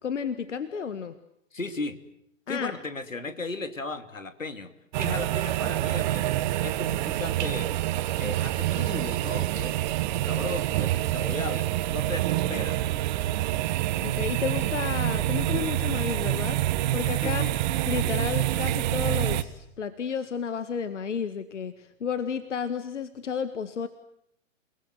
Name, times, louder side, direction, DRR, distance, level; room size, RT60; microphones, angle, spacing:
voice 1, 0.0-1.2 2.5-2.7 14.0-16.6 16.9-17.4 17.9-23.9, left 6 dB, 65° left, 12 dB, 1.8 m, -32 dB
voice 2, 1.5-2.0 2.5-7.7 8.2-9.8 10.3-12.8 17.2-17.5, left 3 dB, 85° left, 10 dB, 2.9 m, -36 dB
sound 1, 4.9-19.4, right 14 dB, 35° right, 1.6 m, -27 dB
30.0 x 20.5 x 9.4 m, 0.72 s
figure-of-eight pair, 120°, 38 cm